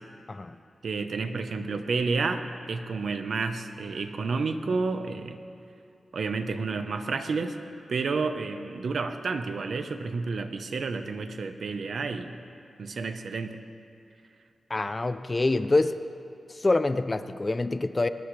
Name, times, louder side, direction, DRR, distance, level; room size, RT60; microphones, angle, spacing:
voice 1, 0.8-5.4 6.1-7.6 7.9-12.3 12.8-13.6, right 4 dB, 60° right, 7 dB, 0.9 m, -30 dB
voice 2, 14.7-16.0 16.6-18.1, left 2 dB, 25° left, 11 dB, 0.4 m, -25 dB
21.0 x 20.0 x 3.3 m, 2.5 s
wide cardioid pair, 170°, 0 cm